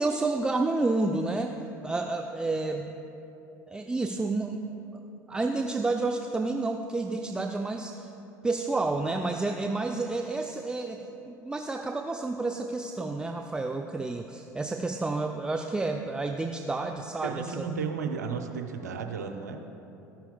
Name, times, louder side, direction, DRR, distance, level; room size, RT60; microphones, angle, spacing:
voice 1, 0.0-1.5 1.8-3.0 3.7-4.7 5.3-8.1 8.4-17.6, right 3 dB, 10° right, 4 dB, 0.4 m, -30 dB
voice 2, 17.2-19.6, right 5 dB, 85° right, 4 dB, 0.5 m, -33 dB
13.0 x 5.7 x 2.2 m, 3.0 s
hypercardioid pair, 70°, 9 cm